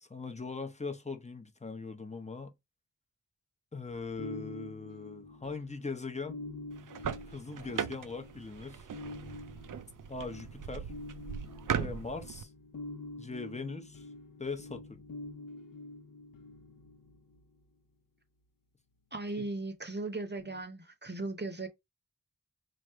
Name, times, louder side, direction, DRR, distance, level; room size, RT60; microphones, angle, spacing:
voice 1, 0.0-2.5 3.7-6.4 7.3-8.9 10.1-10.9 11.8-12.5 13.2-14.0 14.4-15.0 19.4-19.5, left 4 dB, 20° left, 0.7 m, -40 dB
Small Indonesian Gong, 3.8-17.6 20.4-20.6, left 2 dB, 90° left, 0.7 m, -47 dB
sound 1, 6.7-12.4, right 8 dB, 70° right, 0.5 m, -39 dB
voice 2, 19.1-21.7, right 2 dB, 35° right, 0.7 m, -37 dB
3.3 x 2.5 x 4.4 m
wide cardioid pair, 70°, 32 cm